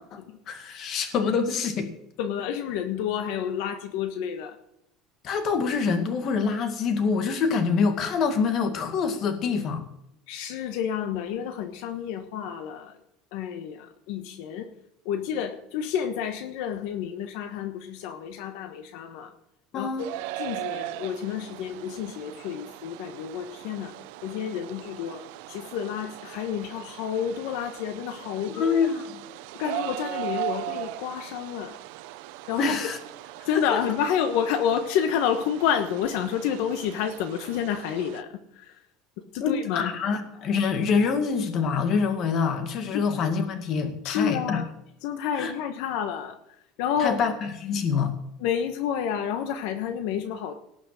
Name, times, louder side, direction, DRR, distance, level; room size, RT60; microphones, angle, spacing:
voice 1, 0.5-1.9 5.2-9.8 19.7-20.1 28.5-29.1 32.6-33.0 33.5-33.8 39.4-44.6 45.3-45.5 47.0-48.1, left 5 dB, 40° left, 7 dB, 2.1 m, -26 dB
voice 2, 2.2-4.6 10.3-12.9 13.3-14.7 15.0-19.3 19.7-20.1 20.4-23.9 24.2-25.2 25.5-28.8 29.6-31.8 32.5-32.7 33.5-38.3 38.6-38.7 39.3-39.9 42.9-43.0 44.0-44.7 45.0-46.3 46.8-47.2 48.4-50.5, left 8 dB, 75° left, 7 dB, 1.3 m, -29 dB
sound 1, 20.0-38.2, right 17 dB, 80° right, 0.8 m, -39 dB
18.5 x 6.2 x 7.6 m, 0.80 s
cardioid pair, 155°, 0 cm